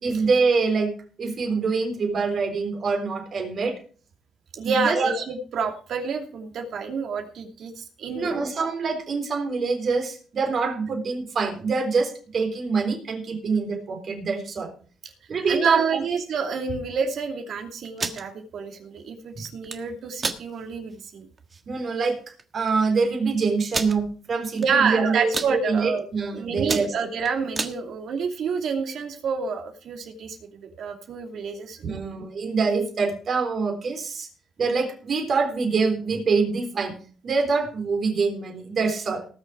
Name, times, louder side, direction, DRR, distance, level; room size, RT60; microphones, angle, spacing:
voice 1, 0.0-3.8 4.6-5.1 8.1-14.7 15.3-16.0 21.7-22.2 22.5-26.9 31.8-34.3 34.6-37.0 37.2-39.3, right 4 dB, 50° right, 3 dB, 3.7 m, -25 dB
voice 2, 4.5-8.5 15.5-21.3 24.5-26.0 26.3-30.4 30.6-32.1, right 5 dB, 65° right, 4 dB, 2.7 m, -28 dB
sound 1, 17.8-18.2 19.5-19.8 20.2-20.4 20.9-21.0 21.4-21.6 22.4-22.5 22.7-22.8 23.7-24.0 24.6-24.9 25.2-25.5 26.1-26.3 26.6-27.8, right 4 dB, 35° right, 1.5 m, -29 dB
19.0 x 6.6 x 4.8 m, 0.41 s
cardioid pair, 90°, 0 cm